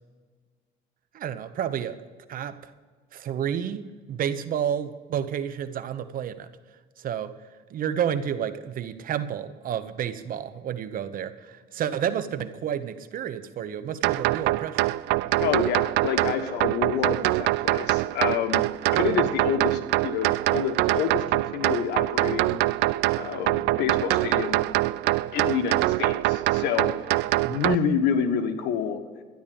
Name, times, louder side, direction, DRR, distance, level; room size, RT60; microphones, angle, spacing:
voice 1, 1.1-2.0 2.3-2.7 3.1-3.8 4.1-6.5 7.0-7.3 7.7-14.9 27.4-27.6, right 9 dB, 55° right, 12 dB, 1.0 m, -30 dB
sound 1, 14.0-27.8, right 18 dB, 90° right, 0.4 m, -24 dB
voice 2, 15.4-18.6 18.9-22.6 23.1-24.7 25.0-26.9 27.5-29.0, left 7 dB, 85° left, 7 dB, 1.4 m, -28 dB
13.0 x 10.5 x 5.3 m, 1.5 s
cardioid pair, 110°, 17 cm